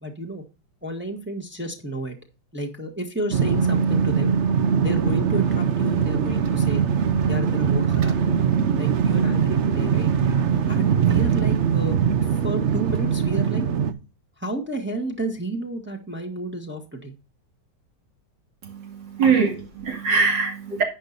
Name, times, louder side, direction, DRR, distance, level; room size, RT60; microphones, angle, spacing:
voice 1, 0.0-0.4 0.8-2.1 2.5-4.3 4.8-6.8 7.3-8.4 8.7-10.1 10.7-12.0 12.3-13.6 14.4-17.1, right 1 dB, 5° right, 1.3 m, -31 dB
sound 1, 3.3-13.9, right 7 dB, 55° right, 0.8 m, -21 dB
voice 2, 18.6-20.8, right 5 dB, 80° right, 3.0 m, -22 dB
11.0 x 8.3 x 2.6 m
omnidirectional pair, 1.9 m